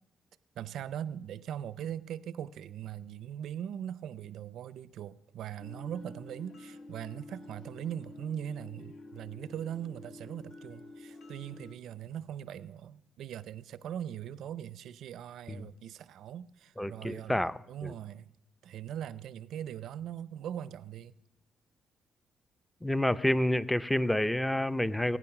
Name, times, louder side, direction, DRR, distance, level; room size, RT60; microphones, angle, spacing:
voice 1, 0.6-17.4 17.7-18.3 18.6-21.1, right 10 dB, 75° right, 0.6 m, -40 dB
sound 1, 5.6-11.8, left 2 dB, 70° left, 1.8 m, -49 dB
voice 2, 16.8-17.9 22.8-25.2, left 1 dB, 5° left, 0.6 m, -29 dB
21.0 x 9.4 x 6.0 m
cardioid pair, 90°, 0 cm